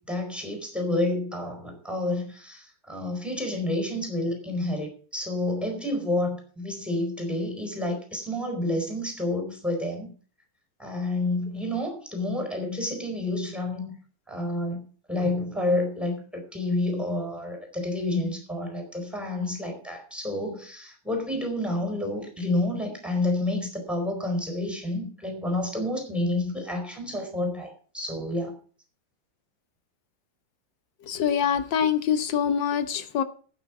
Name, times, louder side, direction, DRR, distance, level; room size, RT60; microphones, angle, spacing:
voice 1, 0.1-10.1 10.8-13.9 14.3-28.5, left 1 dB, ahead, 4.2 m, -29 dB
voice 2, 31.1-33.2, left 8 dB, 85° left, 1.7 m, -25 dB
12.5 x 9.2 x 6.0 m
omnidirectional pair, 2.0 m